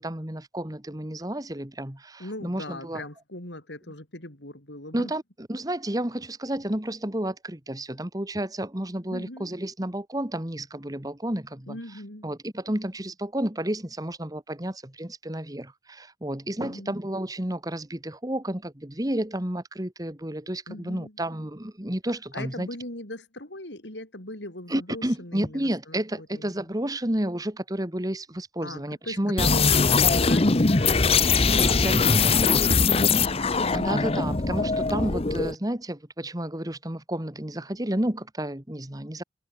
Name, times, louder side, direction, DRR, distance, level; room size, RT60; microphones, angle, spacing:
voice 1, 0.0-3.0 4.9-11.8 12.2-22.7 24.7-29.5 31.5-32.7 33.7-39.2, right 1 dB, 20° right, 1.9 m, -31 dB
voice 2, 2.2-5.1 9.1-9.5 11.7-12.3 16.6-16.9 20.7-21.2 22.3-26.7 28.6-32.1 32.7-34.2, left 1 dB, 75° left, 6.0 m, -40 dB
sound 1, 29.4-35.5, left 4 dB, 35° left, 0.9 m, -21 dB
head